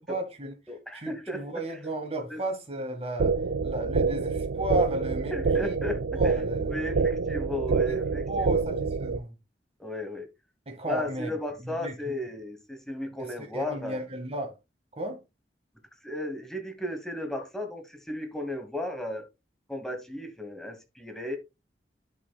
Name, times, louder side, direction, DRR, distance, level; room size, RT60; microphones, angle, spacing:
voice 1, 0.1-0.5 0.9-3.4 3.6-5.3 5.6-5.8 6.1-6.8 7.7-8.0 8.3-9.3 10.6-11.3 11.6-11.9 13.2-14.6 14.9-15.2, right 1 dB, 35° right, 1.6 m, -34 dB
voice 2, 0.7-1.6 2.3-2.4 5.3-6.3 6.7-8.8 9.8-10.3 10.8-14.0 16.0-19.2 19.7-21.4, left 1 dB, 5° left, 1.1 m, -35 dB
sound 1, 3.2-9.2, right 4 dB, 65° right, 0.4 m, -27 dB
10.5 x 5.5 x 2.3 m
head